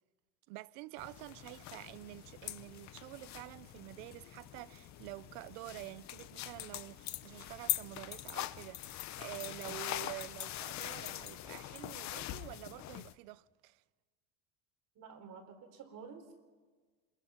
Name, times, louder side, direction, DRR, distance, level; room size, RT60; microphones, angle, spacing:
voice 1, 0.5-13.8, right 20 dB, 90° right, 0.7 m, -48 dB
sound 1, 1.0-13.1, left 14 dB, 45° left, 0.8 m, -43 dB
sound 2, 1.8-11.7, left 5 dB, 25° left, 1.5 m, -63 dB
voice 2, 15.0-16.5, right 6 dB, 55° right, 4.2 m, -51 dB
27.0 x 21.5 x 5.7 m
cardioid pair, 135°, 38 cm